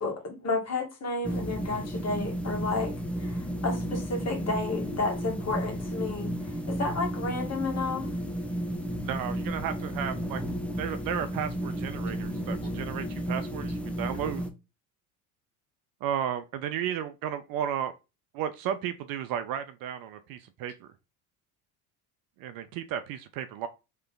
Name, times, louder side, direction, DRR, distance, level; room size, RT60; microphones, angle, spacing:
voice 1, 0.0-8.1, left 3 dB, 35° left, 1.8 m, -32 dB
sound 1, 1.2-14.5, equal, 5° left, 0.8 m, -33 dB
voice 2, 9.0-10.4 10.8-14.4 16.0-17.9 18.3-20.9 22.4-23.7, right 9 dB, 55° right, 0.6 m, -33 dB
3.3 x 3.3 x 3.8 m
hypercardioid pair, 70°, 43 cm